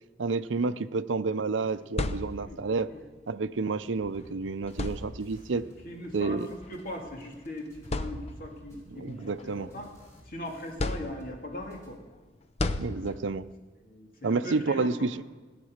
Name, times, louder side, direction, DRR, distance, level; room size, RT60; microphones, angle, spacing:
voice 1, 0.2-2.9 3.3-5.6 6.1-6.5 8.9-9.7 12.8-13.4 14.2-15.2, right 4 dB, 80° right, 13 dB, 0.6 m, -30 dB
sound 1, 1.6-2.8 4.0-4.2 4.7-5.5 6.6-6.8 7.3-7.4 7.8-8.7 9.2-10.2 10.8-11.6 12.6-13.5, left 2 dB, 35° left, 0.6 m, -34 dB
voice 2, 2.4-3.0 5.8-6.4 6.7-9.9 10.3-12.0 13.0-13.1 13.8-15.2, left 1 dB, 50° left, 1 dB, 2.6 m, -40 dB
sound 2, 4.0-11.2 11.5-12.0, right 1 dB, 15° left, 3.7 m, -54 dB
17.0 x 9.6 x 6.5 m, 1.3 s
head